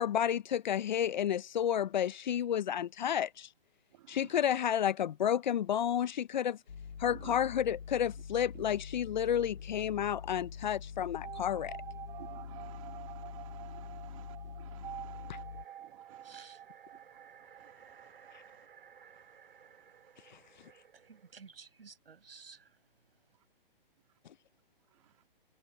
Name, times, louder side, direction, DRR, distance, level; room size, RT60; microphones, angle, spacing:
voice 1, 0.0-3.5 4.1-6.6 7.0-11.8, left 9 dB, 50° left, 0.7 m, -31 dB
voice 2, 3.9-4.4 7.0-7.4 8.5-8.7 11.7-11.8 12.2-16.4 16.9-18.7 18.9-20.5 24.9-25.2, right 16 dB, 35° right, 2.6 m, -57 dB
sound 1, 6.7-15.7, left 7 dB, 75° left, 3.8 m, -45 dB
sound 2, 11.2-19.7 20.0-20.1 20.3-20.4, right 11 dB, 10° right, 1.2 m, -49 dB
sound 3, 15.0-21.4, right 7 dB, 70° right, 5.3 m, -59 dB
voice 3, 16.2-16.6 20.9-22.8, right 5 dB, 85° right, 8.0 m, -54 dB
hypercardioid pair, 160°, 29 cm